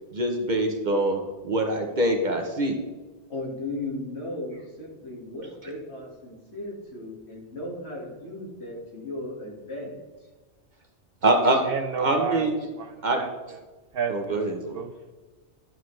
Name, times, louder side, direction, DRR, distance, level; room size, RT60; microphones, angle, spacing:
voice 1, 0.1-2.8 11.2-11.6 12.0-12.7 13.0-13.2 14.1-14.8, right 1 dB, 45° right, 3 dB, 0.9 m, -24 dB
voice 2, 3.3-10.3, left 2 dB, 65° left, -3 dB, 2.2 m, -36 dB
voice 3, 11.6-12.5 12.8-12.9 13.2-13.3 13.9-14.4 14.7-15.1, right 6 dB, 65° right, 8 dB, 0.7 m, -31 dB
11.0 x 6.5 x 3.2 m, 1.3 s
omnidirectional pair, 1.2 m